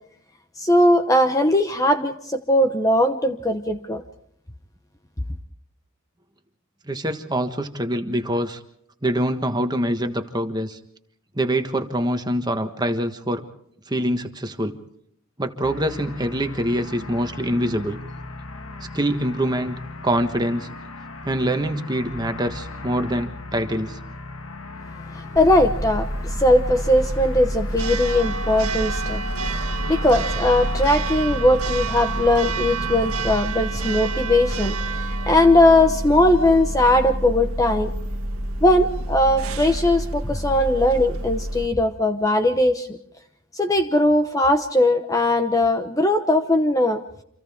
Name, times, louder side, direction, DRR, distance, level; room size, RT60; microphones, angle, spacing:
voice 1, 0.6-4.0 25.1-29.2 29.5-37.9 38.6-43.0 43.5-47.0, left 1 dB, 15° left, 6 dB, 0.9 m, -19 dB
voice 2, 6.9-8.6 9.0-10.8 11.3-13.4 13.9-14.8 15.4-18.0 18.9-19.8 20.0-20.7 21.2-24.0, right 1 dB, 20° right, 6 dB, 1.4 m, -24 dB
sound 1, 15.6-33.4, left 2 dB, 70° left, 1.6 m, -37 dB
Church bell, 25.4-41.7, right 2 dB, 80° right, 1.6 m, -28 dB
29.0 x 27.0 x 3.6 m, 0.70 s
head